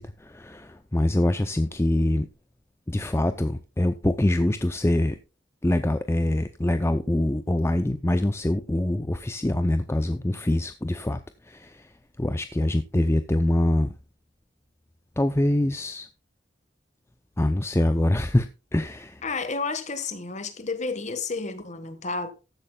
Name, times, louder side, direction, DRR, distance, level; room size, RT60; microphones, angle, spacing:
voice 1, 0.0-2.3 2.9-5.2 5.6-11.9 12.2-13.9 15.2-16.1 17.4-19.2, left 1 dB, 15° left, 0.5 m, -24 dB
voice 2, 19.2-22.3, left 4 dB, 35° left, 1.5 m, -31 dB
14.5 x 11.0 x 2.3 m
head